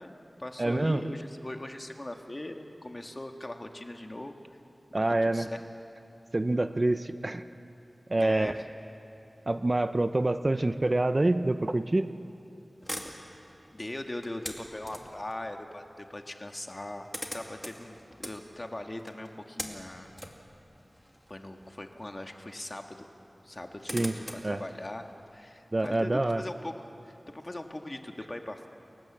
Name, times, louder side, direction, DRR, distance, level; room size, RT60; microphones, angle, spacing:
voice 1, 0.0-4.4 4.9-5.6 8.1-8.7 13.7-20.1 21.3-23.1 23.4-28.7, left 1 dB, 35° left, 4 dB, 1.7 m, -40 dB
voice 2, 0.6-1.0 4.9-5.5 6.3-7.4 8.1-8.5 9.5-12.1 23.9-24.1 24.4-24.6 25.7-26.4, right 2 dB, 40° right, 10 dB, 0.7 m, -26 dB
sound 1, 12.8-15.3 16.4-16.5 16.7-22.2 22.5-22.6 23.4-25.9, equal, 10° left, 2.3 m, -43 dB
29.0 x 16.0 x 7.4 m, 2.8 s
wide cardioid pair, 55°, 0 cm